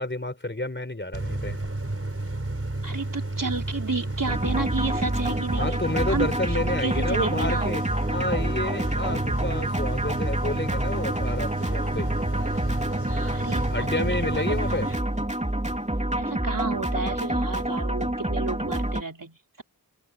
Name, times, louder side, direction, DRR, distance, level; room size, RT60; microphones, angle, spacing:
voice 1, 0.0-1.6 5.6-7.8 8.1-12.1 13.7-14.9, left 1 dB, 30° left, 4.1 m, -30 dB
sound 1, 1.1-15.0, right 2 dB, 35° right, 4.9 m, -31 dB
voice 2, 2.8-5.8 6.1-6.3 6.8-7.7 13.3-14.6 16.2-19.6, right 3 dB, 55° right, 4.1 m, -31 dB
sound 2, 4.3-19.0, right 1 dB, 20° right, 3.0 m, -28 dB
open air
wide cardioid pair, 60°, 39 cm